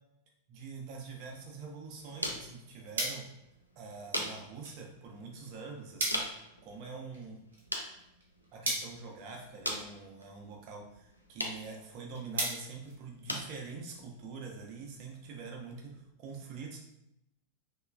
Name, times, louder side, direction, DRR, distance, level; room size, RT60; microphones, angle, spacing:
voice 1, 0.5-3.2 3.8-7.4 8.5-16.8, right 4 dB, 40° right, 0 dB, 0.6 m, -45 dB
sound 1, 1.0-16.0, equal, 90° left, 0.3 m, -44 dB
sound 2, 2.4-13.7, right 2 dB, 70° right, 0.8 m, -42 dB
2.9 x 2.2 x 2.3 m, 0.82 s
figure-of-eight pair, 90°, 0 cm